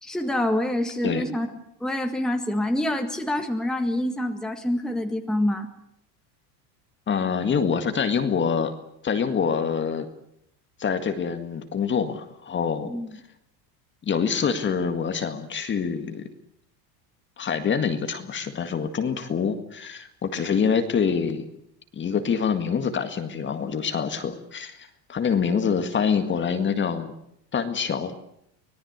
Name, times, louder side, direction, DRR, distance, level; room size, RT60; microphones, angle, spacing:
voice 1, 0.0-1.5 1.8-5.7 12.9-13.1, left 1 dB, ahead, 4 dB, 1.8 m, -26 dB
voice 2, 7.1-8.7 9.0-10.1 10.8-12.9 14.0-16.2 17.4-21.5 21.9-27.1 27.5-28.1, left 6 dB, 25° left, 8 dB, 1.9 m, -25 dB
25.0 x 18.5 x 8.1 m, 0.74 s
supercardioid pair, 145°, 48 cm